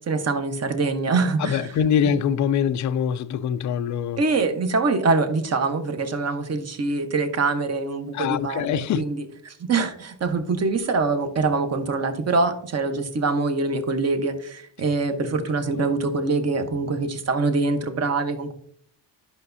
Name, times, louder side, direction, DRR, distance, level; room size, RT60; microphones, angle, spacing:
voice 1, 0.1-1.6 4.2-18.5, right 3 dB, 35° right, 1.1 m, -24 dB
voice 2, 1.4-4.2 8.1-9.1 15.2-15.3 15.8-15.9, left 8 dB, 45° left, 0.4 m, -24 dB
11.0 x 5.8 x 2.7 m
cardioid pair, 110°, 44 cm